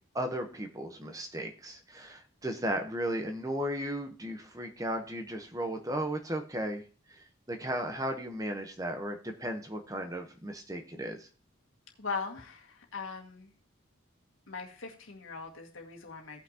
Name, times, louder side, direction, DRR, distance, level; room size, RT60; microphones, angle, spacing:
voice 1, 0.1-6.8 7.1-11.3, right 1 dB, 15° right, 4 dB, 0.9 m, -35 dB
voice 2, 12.0-13.5 14.5-16.4, left 4 dB, 85° left, 1 dB, 1.9 m, -40 dB
17.0 x 5.9 x 2.9 m, 0.37 s
head